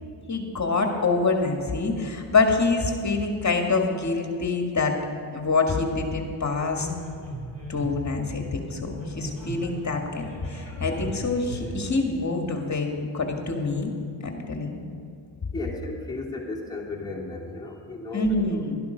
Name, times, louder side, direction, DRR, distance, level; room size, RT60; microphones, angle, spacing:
voice 1, 0.3-4.9 5.3-6.9 7.7-12.9 13.1-13.9 14.2-14.8 18.1-18.8, left 3 dB, 35° left, 3 dB, 2.1 m, -25 dB
sound 1, 5.9-12.0, right 1 dB, 30° right, 3.4 m, -38 dB
voice 2, 15.5-18.7, left 2 dB, 10° left, -5 dB, 3.1 m, -35 dB
12.0 x 12.0 x 5.2 m, 2.3 s
cardioid pair, 65°, 49 cm